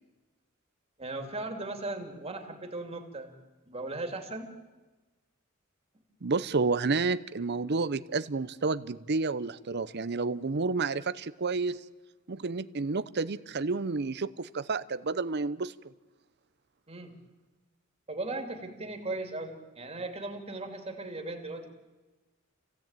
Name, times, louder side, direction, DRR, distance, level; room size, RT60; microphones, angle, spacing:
voice 1, 1.0-3.3 3.7-4.5 16.9-17.2 18.1-21.7, right 2 dB, 30° right, 4 dB, 2.8 m, -37 dB
voice 2, 6.2-11.8 12.3-15.7, right 4 dB, 55° right, 14 dB, 0.7 m, -30 dB
27.5 x 16.5 x 9.0 m, 1.2 s
head